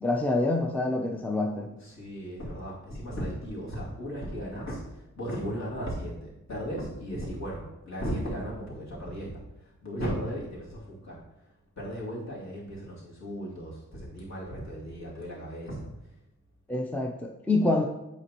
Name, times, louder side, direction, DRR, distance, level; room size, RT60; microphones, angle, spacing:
voice 1, 0.0-1.7 16.7-17.8, left 2 dB, 5° left, 2 dB, 0.5 m, -26 dB
voice 2, 1.8-11.2 11.8-16.1, equal, 55° left, -6 dB, 2.5 m, -36 dB
8.3 x 5.1 x 3.0 m, 0.91 s
wide cardioid pair, 130°, 32 cm